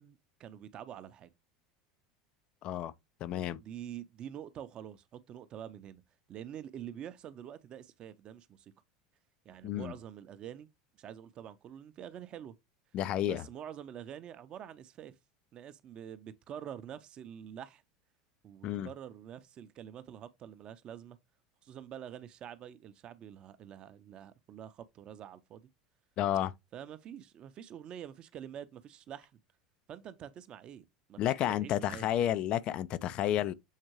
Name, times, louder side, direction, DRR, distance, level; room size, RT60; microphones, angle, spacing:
voice 1, 0.0-1.3 3.6-6.0 6.3-8.7 9.4-10.7 11.0-12.5 13.2-15.1 15.5-17.8 18.4-21.2 21.6-25.7 26.7-29.3 29.9-32.1, right 9 dB, 35° right, 0.7 m, -46 dB
voice 2, 2.6-2.9 3.2-3.6 9.6-9.9 12.9-13.5 18.6-18.9 26.2-26.5 31.2-33.5, left 11 dB, 40° left, 0.5 m, -31 dB
7.4 x 4.3 x 3.0 m
figure-of-eight pair, 75°, 3 cm